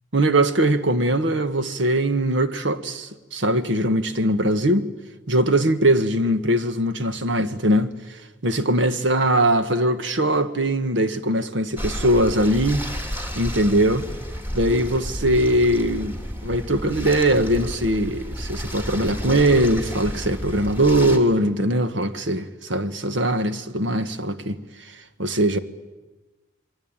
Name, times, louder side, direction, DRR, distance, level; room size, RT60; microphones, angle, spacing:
voice 1, 0.1-4.9 5.3-12.9 13.4-14.1 14.5-25.6, right 1 dB, 75° right, 1.6 m, -21 dB
sound 1, 11.8-21.2, equal, 10° right, 2.8 m, -32 dB
27.5 x 22.5 x 9.0 m
head